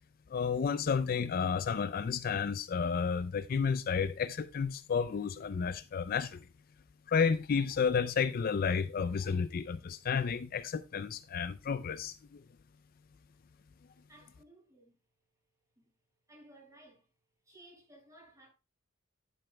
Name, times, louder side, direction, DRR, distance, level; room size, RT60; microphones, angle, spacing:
voice 1, 0.3-6.4 7.1-12.4, left 6 dB, 45° left, 0.4 m, -31 dB
voice 2, 14.1-15.0 15.8-15.9 16.3-17.1 17.4-18.5, right 1 dB, 15° right, 5.3 m, -58 dB
10.5 x 9.6 x 2.2 m
head